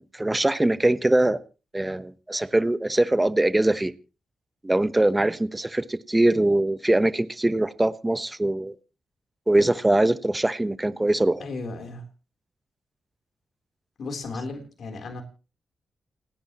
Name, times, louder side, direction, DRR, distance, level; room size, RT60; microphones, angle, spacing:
voice 1, 0.0-1.4 1.7-3.9 4.6-8.7 9.5-11.4, right 1 dB, 15° right, 1.1 m, -22 dB
voice 2, 11.4-12.0 14.0-15.2, left 3 dB, 70° left, 3.7 m, -35 dB
29.0 x 10.0 x 3.1 m
cardioid pair, 60°, 0 cm